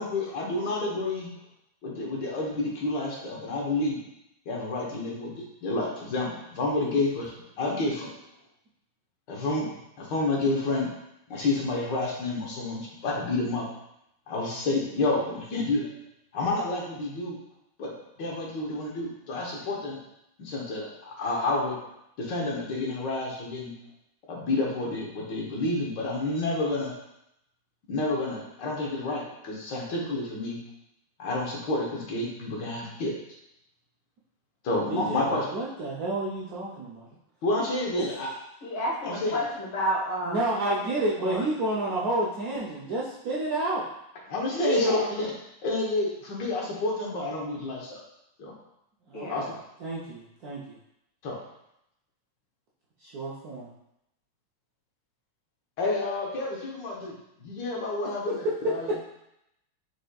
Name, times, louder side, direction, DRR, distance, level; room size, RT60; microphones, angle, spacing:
voice 1, 0.0-1.3 1.8-4.0 4.5-8.1 9.3-9.7 10.0-10.9 11.3-13.7 14.3-15.9 16.3-17.4 17.8-17.9 18.2-20.0 20.4-20.9 21.2-21.7 22.2-23.7 24.3-26.9 27.9-30.6 31.2-33.1 34.6-35.5 37.4-38.3 39.0-39.4 44.3-45.3 45.6-48.0 48.4-48.5 49.3-49.4 51.2-51.4 55.8-58.9, left 2 dB, 65° left, -2 dB, 1.6 m, -29 dB
voice 2, 34.9-37.1 37.9-38.1 40.2-43.8 49.1-49.5 49.8-50.6 53.0-53.7, right 2 dB, 70° right, -6 dB, 0.9 m, -30 dB
voice 3, 38.6-40.7 41.2-41.5 44.5-45.0 49.1-49.4, equal, 80° left, -4 dB, 2.1 m, -30 dB
5.0 x 4.2 x 2.3 m, 0.81 s
omnidirectional pair, 2.3 m